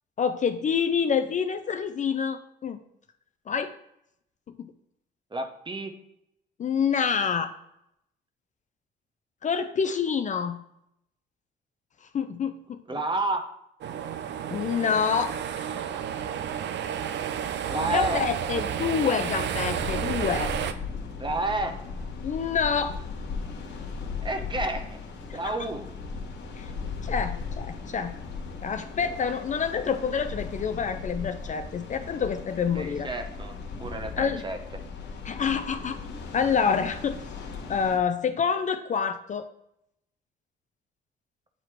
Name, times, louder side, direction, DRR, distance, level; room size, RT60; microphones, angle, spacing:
voice 1, 0.2-2.8 3.5-3.7 4.6-4.7 6.6-7.5 9.4-10.6 12.1-12.8 14.5-15.7 17.8-20.5 22.2-23.0 25.3-25.5 26.6-26.7 27.0-28.1 28.6-33.1 34.2-34.4 35.2-36.0 36.3-37.1 37.7-39.5, left 6 dB, 40° left, 9 dB, 0.4 m, -27 dB
voice 2, 5.3-5.9 12.9-13.5 17.7-18.2 21.2-21.8 24.2-25.0 25.3-25.9 29.0-29.2 32.7-34.6, right 2 dB, 25° right, 6 dB, 0.8 m, -30 dB
sound 1, 13.8-20.7, right 9 dB, 65° right, 0.5 m, -31 dB
sound 2, 19.5-38.0, left 4 dB, 65° left, 1.0 m, -37 dB
7.5 x 2.9 x 4.5 m, 0.79 s
cardioid pair, 90°, 20 cm